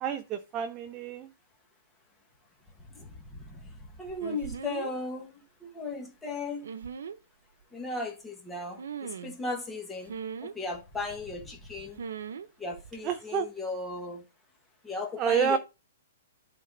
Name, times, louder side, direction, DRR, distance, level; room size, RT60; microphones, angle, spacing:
voice 1, 0.0-1.3 13.0-13.5 15.2-15.6, right 8 dB, 20° right, 0.6 m, -28 dB
voice 2, 4.0-5.3 5.6-6.6 7.7-8.8 9.2-10.1 10.4-12.0 12.6-14.2 14.8-15.6, left 3 dB, 5° left, 1.4 m, -35 dB
sound 1, 4.2-4.9 6.6-7.2 8.8-9.4 10.1-10.5 12.0-12.5 12.7-13.0, right 7 dB, 75° right, 1.0 m, -39 dB
10.5 x 3.9 x 5.3 m
hypercardioid pair, 175°, 0 cm